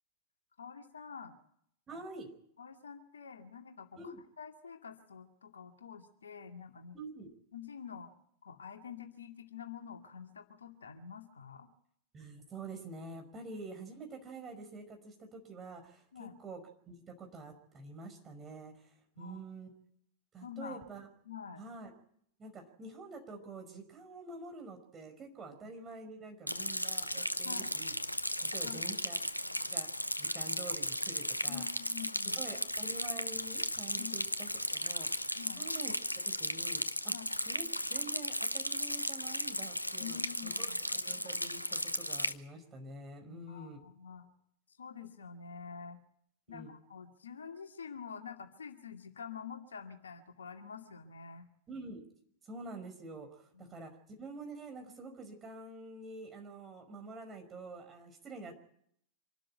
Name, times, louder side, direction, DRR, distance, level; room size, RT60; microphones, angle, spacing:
voice 1, 0.6-1.3 2.6-7.0 7.5-8.1 8.4-11.7 16.1-16.3 19.2-19.4 20.4-20.8 21.3-21.6 27.4-27.7 28.6-28.9 31.4-32.4 34.0-34.1 35.3-35.6 37.1-37.3 40.0-40.8 43.3-44.3 44.8-46.0 46.5-51.4 53.5-53.7, left 7 dB, 70° left, 5 dB, 2.3 m, -47 dB
voice 2, 1.9-2.3 4.0-4.2 6.9-7.3 12.1-16.6 16.9-19.7 20.3-21.1 21.6-21.9 22.4-27.9 28.5-29.2 29.7-31.6 32.3-36.0 36.3-37.1 37.5-43.9 46.5-46.7 51.7-52.1 52.4-53.9 54.2-58.5, right 3 dB, 25° right, 4 dB, 5.4 m, -47 dB
Rain, 26.5-42.3, left 1 dB, 85° left, 0.9 m, -35 dB
26.0 x 13.0 x 8.9 m, 0.68 s
figure-of-eight pair, 90°, 0 cm